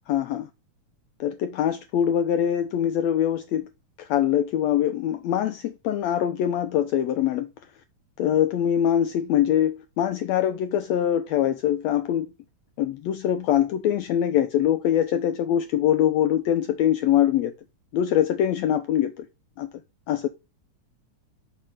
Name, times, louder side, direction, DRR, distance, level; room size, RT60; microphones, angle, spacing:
voice 1, 0.1-0.5 1.2-3.7 4.0-7.5 8.2-12.3 12.8-17.5 17.9-19.3 19.6-19.7 20.1-20.3, left 10 dB, 90° left, 1.5 m, -23 dB
6.6 x 3.7 x 6.2 m
omnidirectional pair, 3.6 m